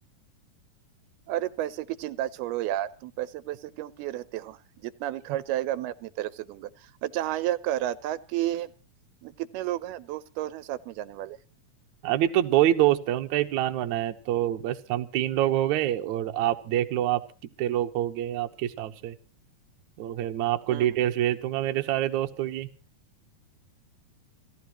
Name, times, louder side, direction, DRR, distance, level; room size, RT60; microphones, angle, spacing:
voice 1, 1.3-8.7 9.2-11.4 20.7-21.0, right 13 dB, 85° right, 15 dB, 2.8 m, -32 dB
voice 2, 12.0-17.2 17.6-19.1 20.0-22.7, right 12 dB, 65° right, 6 dB, 2.1 m, -26 dB
29.0 x 13.0 x 3.0 m, 0.37 s
omnidirectional pair, 4.4 m